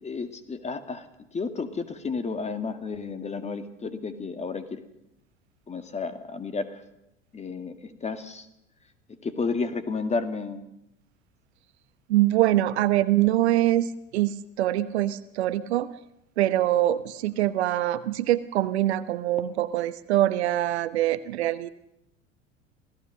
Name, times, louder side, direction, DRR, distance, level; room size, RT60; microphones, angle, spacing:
voice 1, 0.0-4.8 5.7-6.8 7.3-8.5 9.2-10.7, left 4 dB, 20° left, 9 dB, 2.1 m, -32 dB
voice 2, 12.1-15.9 16.4-21.7, right 14 dB, 60° right, 14 dB, 1.0 m, -24 dB
27.0 x 17.0 x 6.6 m, 0.84 s
figure-of-eight pair, 75°, 37 cm